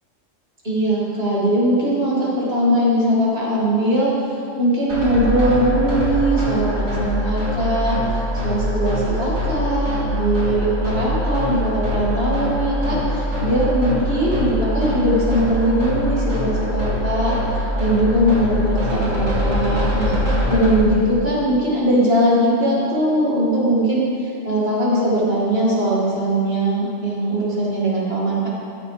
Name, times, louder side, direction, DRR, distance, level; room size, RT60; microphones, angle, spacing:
voice 1, 0.6-4.1 4.6-28.5, right 1 dB, 50° right, -6 dB, 2.5 m, -20 dB
sound 1, 4.9-20.8, equal, 85° right, 2.7 m, -23 dB
14.0 x 7.6 x 3.3 m, 2.5 s
omnidirectional pair, 1.3 m